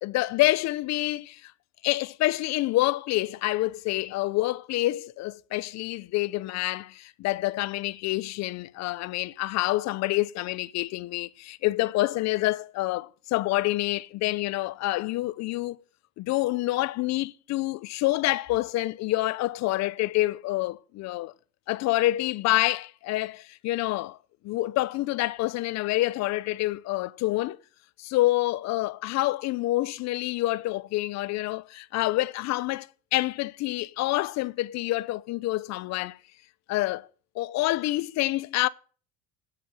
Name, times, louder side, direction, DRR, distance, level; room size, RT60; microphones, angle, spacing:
voice 1, 0.0-1.5 1.8-15.8 16.2-21.3 21.7-24.2 24.4-27.6 28.0-36.2 36.7-37.1 37.4-38.7, left 17 dB, 45° left, 0.6 m, -27 dB
8.7 x 7.6 x 7.7 m
cardioid pair, 140°, 37 cm